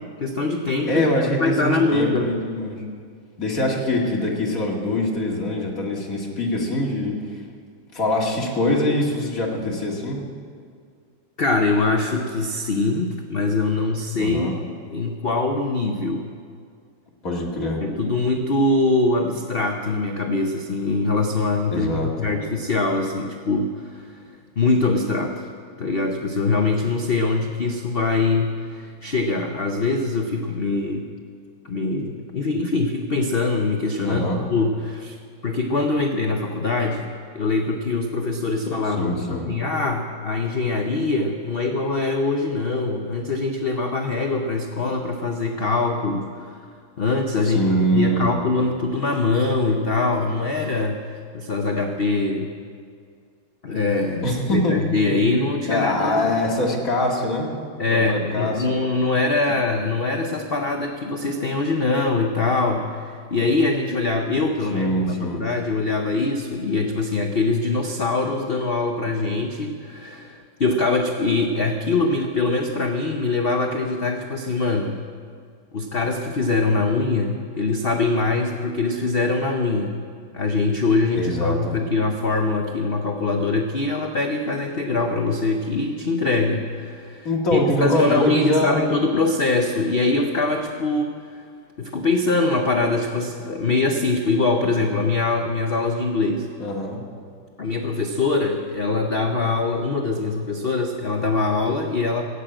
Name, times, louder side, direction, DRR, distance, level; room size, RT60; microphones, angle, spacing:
voice 1, 0.0-1.1 1.4-2.4 11.4-14.6 14.9-16.3 17.8-24.2 24.6-25.5 25.8-31.1 31.6-35.2 35.4-46.6 47.0-52.5 53.6-56.3 57.8-75.0 75.7-80.0 80.3-91.4 91.8-96.5 97.6-102.2, left 3 dB, 60° left, 4 dB, 0.6 m, -23 dB
voice 2, 0.9-2.8 3.4-7.1 7.9-10.2 14.1-14.5 17.2-17.8 21.7-22.3 34.0-34.4 38.9-39.4 47.5-48.3 54.2-54.8 55.7-57.5 57.9-58.5 64.7-65.5 81.1-81.8 87.2-88.8 96.6-97.0, left 1 dB, 45° left, -1 dB, 2.4 m, -23 dB
15.0 x 8.4 x 8.8 m, 2.2 s
omnidirectional pair, 2.2 m